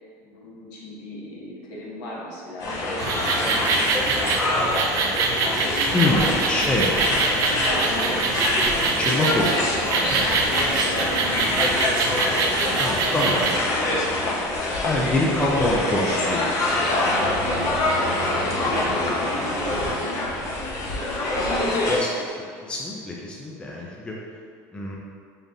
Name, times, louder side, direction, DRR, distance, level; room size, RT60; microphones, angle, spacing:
voice 1, 0.2-4.4 4.9-8.9 10.3-12.0 13.6-14.8 15.5-16.0 17.1-20.7 20.9-22.3, left 1 dB, 70° left, -5 dB, 1.1 m, -38 dB
sound 1, 2.6-22.0, left 2 dB, 45° left, 0.7 m, -25 dB
sound 2, 3.0-13.6, right 4 dB, 50° right, 0.4 m, -25 dB
voice 2, 5.9-6.9 9.0-10.3 12.8-13.4 14.8-16.5 17.3-17.4 21.1-21.2 21.9-22.1 22.6-24.1 24.7-25.0, left 1 dB, 15° left, -3 dB, 0.4 m, -25 dB
3.8 x 3.4 x 2.7 m, 2.1 s
cardioid pair, 135°, 7 cm